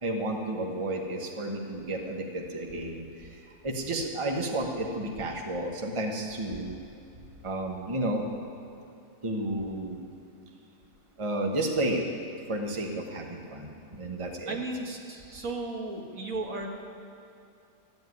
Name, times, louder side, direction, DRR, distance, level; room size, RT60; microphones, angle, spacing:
voice 1, 0.0-3.0 3.6-6.7 7.4-8.2 9.2-10.0 11.2-12.0 12.5-14.6, right 1 dB, 20° right, 1 dB, 1.1 m, -31 dB
voice 2, 14.5-16.7, right 2 dB, 60° right, 1 dB, 1.8 m, -35 dB
14.0 x 7.8 x 9.5 m, 2.8 s
omnidirectional pair, 1.7 m